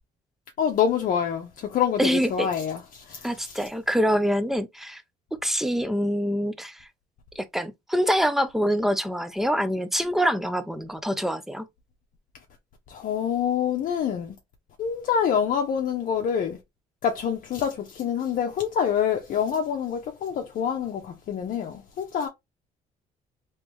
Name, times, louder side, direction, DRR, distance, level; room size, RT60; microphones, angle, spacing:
voice 1, 0.6-3.6 12.9-14.4 14.8-16.6 17.0-22.3, left 8 dB, 55° left, 0.7 m, -26 dB
voice 2, 2.0-2.5 3.2-5.0 5.4-6.9 7.4-11.7, equal, ahead, 0.5 m, -25 dB
3.4 x 3.1 x 3.0 m
cardioid pair, 110°, 17 cm